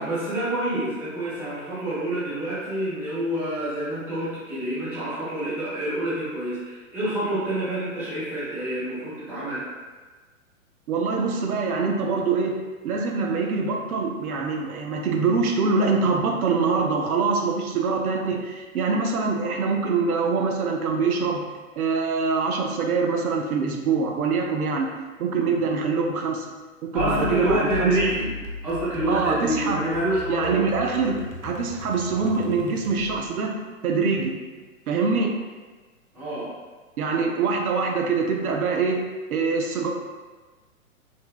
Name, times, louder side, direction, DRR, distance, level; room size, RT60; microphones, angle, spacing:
voice 1, 0.0-9.6 25.4-25.6 26.9-28.3 28.6-30.6 36.1-36.5, right 1 dB, 5° right, -12 dB, 0.4 m, -27 dB
voice 2, 10.9-12.6 12.8-21.4 21.8-24.9 25.2-26.5 26.9-27.9 29.1-29.8 30.3-33.5 33.8-34.4 34.9-35.3 37.0-39.0 39.3-39.9, right 4 dB, 90° right, 2 dB, 0.5 m, -24 dB
sound 1, 27.0-33.3, left 4 dB, 55° left, 0.6 m, -36 dB
3.2 x 2.1 x 2.2 m, 1.3 s
hypercardioid pair, 115°, 42 cm